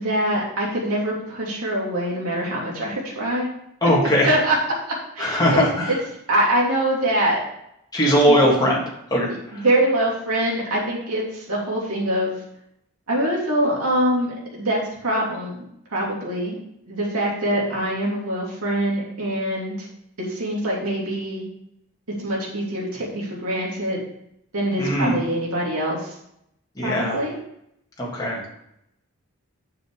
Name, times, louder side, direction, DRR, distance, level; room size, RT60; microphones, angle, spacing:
voice 1, 0.0-3.5 4.2-4.6 5.1-6.0 6.3-7.4 8.3-8.4 9.5-12.3 13.1-16.6 16.9-19.9 20.3-21.4 22.2-24.0 24.5-26.1 26.8-27.4, right 1 dB, 90° right, -4 dB, 3.0 m, -24 dB
voice 2, 3.8-4.3 5.2-5.9 7.9-8.8 9.1-9.3 9.5-9.6 24.8-25.2 26.8-27.2 28.0-28.4, equal, 20° left, -5 dB, 2.6 m, -19 dB
7.6 x 7.3 x 4.8 m, 0.76 s
head